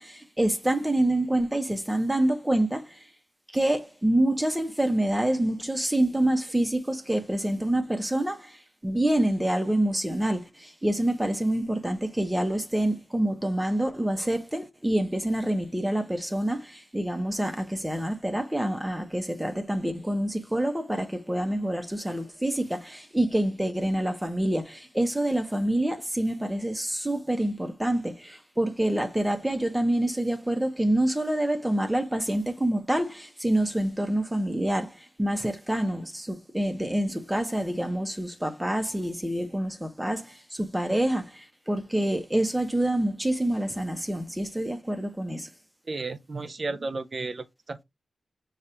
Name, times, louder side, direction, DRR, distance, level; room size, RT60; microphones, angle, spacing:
voice 1, 0.0-3.0 3.5-45.5, right 1 dB, 10° right, 0.8 m, -27 dB
voice 2, 45.9-47.8, right 3 dB, 45° right, 0.4 m, -33 dB
5.3 x 2.4 x 4.2 m
wide cardioid pair, 85°, 0 cm